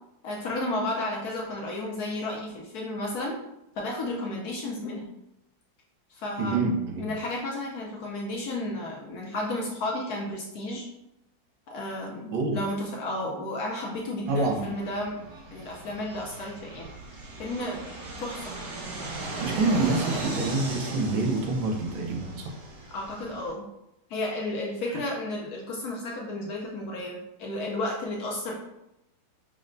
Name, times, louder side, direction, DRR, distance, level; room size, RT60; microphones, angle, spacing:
voice 1, 0.2-3.4 3.8-5.1 6.1-6.7 7.0-10.9 11.7-15.2 15.5-16.9 17.4-17.8 18.2-18.6 22.9-23.6 24.1-28.6, left 1 dB, 65° left, -2 dB, 1.0 m, -32 dB
voice 2, 6.4-7.0 12.3-12.6 14.3-14.7 19.4-22.5, right 3 dB, 90° right, 1 dB, 1.5 m, -26 dB
Fixed-wing aircraft airplane, 14.3-23.5, right 2 dB, 65° right, 1.5 m, -37 dB
6.3 x 2.1 x 2.5 m, 0.86 s
omnidirectional pair, 2.1 m